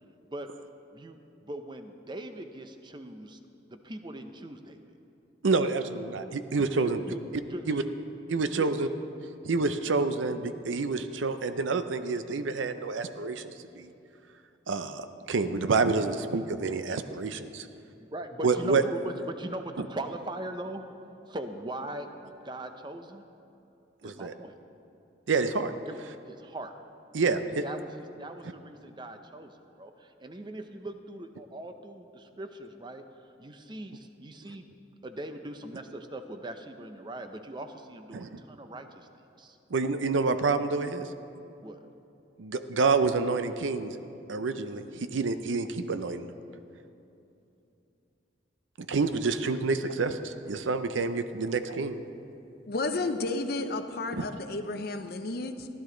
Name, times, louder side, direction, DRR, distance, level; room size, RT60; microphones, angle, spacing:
voice 1, 0.9-3.4 3.7-4.8 6.8-7.8 8.5-8.8 18.1-20.8 21.3-23.2 24.0-24.5 25.9-26.0 26.3-26.7 27.6-33.0 33.4-34.6 35.0-39.1 39.4-39.6 41.6-41.8 52.9-53.3, right 1 dB, 25° right, 7 dB, 0.6 m, -40 dB
voice 2, 5.4-7.0 7.7-7.8 8.3-8.9 9.4-13.4 13.8-13.9 14.7-17.6 18.4-18.8 24.0-24.3 25.3-25.7 27.1-27.6 38.1-38.3 39.7-41.1 42.4-43.9 44.3-44.8 45.1-46.3 48.9-52.0 54.2-54.3, right 4 dB, 90° right, 10 dB, 0.6 m, -28 dB
voice 3, 52.7-55.7, left 2 dB, 55° left, 8 dB, 0.6 m, -32 dB
15.0 x 11.0 x 3.8 m, 2.8 s
head